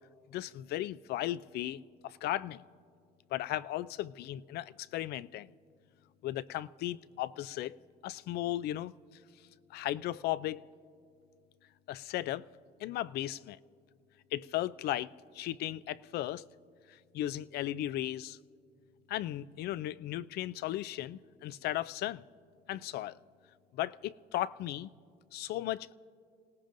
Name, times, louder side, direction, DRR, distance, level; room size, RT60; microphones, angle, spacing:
voice 1, 0.3-2.6 3.3-5.5 6.2-7.8 8.0-8.9 9.7-10.6 11.9-12.5 12.8-13.6 14.3-16.5 17.1-18.4 19.1-22.2 22.7-23.2 23.7-24.9 25.3-25.9, left 14 dB, 70° left, 0.4 m, -36 dB
29.5 x 18.0 x 2.6 m
cardioid pair, 110°, 17 cm